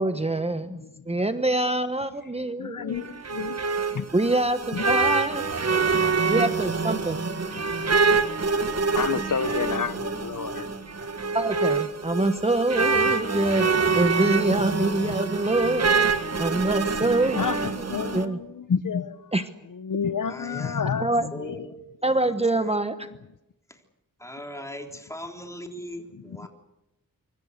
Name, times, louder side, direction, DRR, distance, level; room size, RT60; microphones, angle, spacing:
voice 1, 0.0-3.0 4.1-5.4 5.9-7.2 11.3-13.7 13.9-17.5 18.1-18.4 19.3-19.4 21.0-21.3 22.0-23.1, right 2 dB, 20° right, 9 dB, 1.1 m, -25 dB
voice 2, 0.6-1.2 2.5-3.6 3.9-4.1 4.7-4.8 7.6-7.9 8.9-10.7 13.0-13.8 14.6-14.9 16.2-16.6 17.3-19.3 19.7-21.7 26.4-26.5, left 6 dB, 65° left, 13 dB, 1.0 m, -31 dB
sound 1, 2.9-18.2, right 4 dB, 45° right, 1.7 m, -26 dB
voice 3, 20.2-20.9 21.3-22.8 23.7-23.8 24.2-26.5, left 1 dB, 10° left, 4 dB, 3.6 m, -40 dB
25.5 x 24.0 x 6.7 m, 0.93 s
wide cardioid pair, 105°, 34 cm